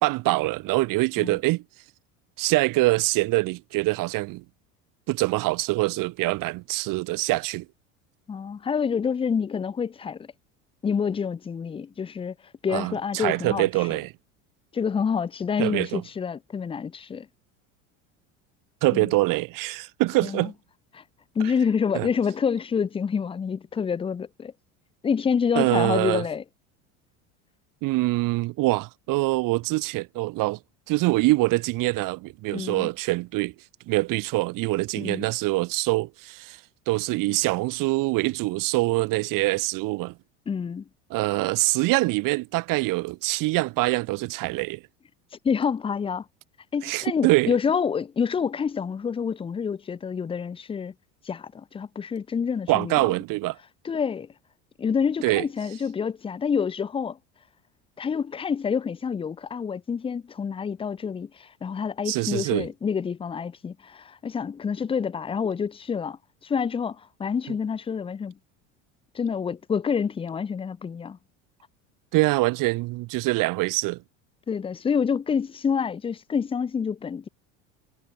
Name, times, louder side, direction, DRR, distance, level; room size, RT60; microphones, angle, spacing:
voice 1, 0.0-1.6 2.4-4.4 5.1-7.7 12.7-14.1 15.6-16.0 18.8-20.5 21.9-22.1 25.6-26.2 27.8-30.6 30.9-33.5 33.9-36.6 36.9-40.2 41.1-44.8 46.8-47.6 52.7-53.6 55.2-55.4 62.1-62.7 72.1-74.0, right 21 dB, 60° right, 2.3 m, -24 dB
voice 2, 8.3-10.3 10.8-12.3 12.6-14.0 14.7-17.3 18.9-19.1 20.2-20.5 20.9-21.0 21.4-24.5 25.0-26.4 32.5-32.9 35.0-35.2 40.5-40.8 45.4-46.3 46.7-50.9 51.2-53.1 53.8-54.3 54.8-57.2 58.0-68.3 69.1-71.2 74.5-77.3, left 6 dB, 15° left, 0.5 m, -27 dB
supercardioid pair, 100°, 37 cm